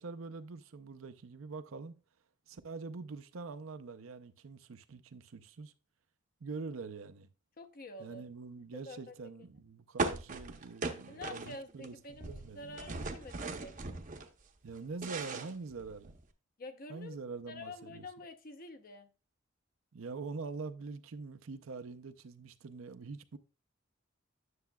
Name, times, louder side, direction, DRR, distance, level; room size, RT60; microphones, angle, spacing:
voice 1, 0.0-1.9 2.5-5.7 6.4-7.3 8.0-12.8 14.6-16.2 16.9-18.0 19.9-23.4, right 4 dB, 80° right, 0.6 m, -44 dB
voice 2, 7.6-8.2 8.9-9.1 11.1-13.7 16.6-17.2 17.5-19.1, left 2 dB, 45° left, 0.7 m, -48 dB
sound 1, 10.0-11.9 12.1-14.3 14.7-16.2, right 3 dB, 40° right, 0.7 m, -38 dB
9.5 x 6.8 x 2.2 m
head